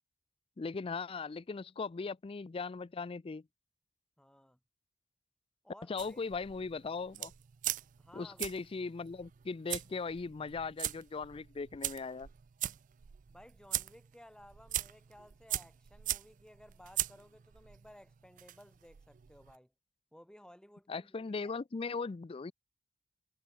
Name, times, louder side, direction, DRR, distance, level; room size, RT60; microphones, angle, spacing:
voice 1, 0.6-3.4 5.9-7.3 8.1-12.3 20.9-22.5, left 4 dB, 30° left, 0.4 m, -39 dB
voice 2, 4.2-4.6 5.6-6.2 8.0-8.4 13.3-19.7 20.1-21.5, equal, 5° left, 3.5 m, -57 dB
sound 1, 6.0-19.5, right 14 dB, 40° right, 0.4 m, -41 dB
head